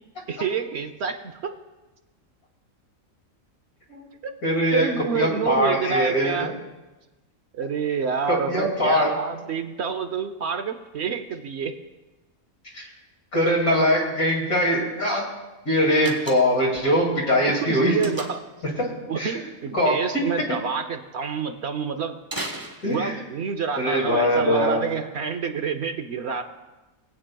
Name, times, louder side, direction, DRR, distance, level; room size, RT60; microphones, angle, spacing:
voice 1, 0.3-1.5 4.2-4.3 4.7-6.5 7.5-11.8 17.5-18.4 19.1-22.2 22.8-26.4, right 6 dB, 60° right, 7 dB, 0.8 m, -28 dB
voice 2, 4.4-4.9 5.1-6.4 8.3-9.2 12.7-12.8 13.3-15.3 15.7-18.0 18.8-19.4 19.7-20.6 22.8-23.1 23.8-24.8, equal, 85° left, -2 dB, 2.8 m, -22 dB
Slam, 16.0-16.7 18.0-18.6 22.2-23.3, right 1 dB, 15° right, 1.1 m, -35 dB
22.5 x 8.7 x 2.3 m, 1.1 s
omnidirectional pair, 1.4 m